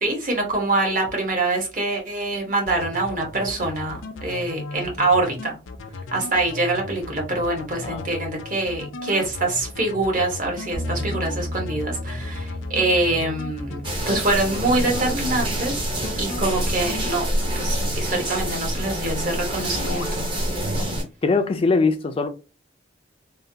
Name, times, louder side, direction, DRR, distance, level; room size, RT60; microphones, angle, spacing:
voice 1, 0.0-5.5 6.1-15.9 16.2-17.2 17.6-20.3, right 2 dB, 45° right, 1.0 m, -25 dB
sound 1, 2.7-17.0 17.4-18.0 18.3-19.3 19.6-20.1, left 3 dB, 90° left, 0.5 m, -36 dB
sound 2, 10.7-20.2, left 1 dB, 70° right, 1.5 m, -36 dB
sound 3, 13.8-21.0, right 1 dB, 25° right, 0.7 m, -26 dB
voice 2, 21.2-22.3, left 4 dB, 30° left, 0.3 m, -21 dB
3.3 x 2.2 x 2.6 m
head